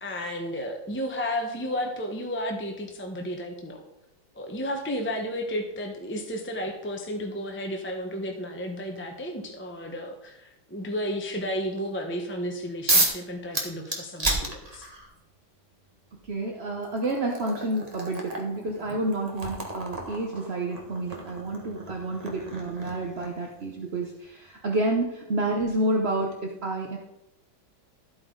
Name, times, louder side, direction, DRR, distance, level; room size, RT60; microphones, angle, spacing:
voice 1, 0.0-3.8 4.3-14.9, equal, 10° left, 2 dB, 0.7 m, -32 dB
sound 1, 12.9-13.2 13.5-15.1 16.2-16.3 16.8-23.5, right 2 dB, 20° right, 1.4 m, -31 dB
voice 2, 16.3-27.0, right 2 dB, 45° right, 1 dB, 0.9 m, -29 dB
13.5 x 8.7 x 4.0 m, 0.89 s
omnidirectional pair, 2.3 m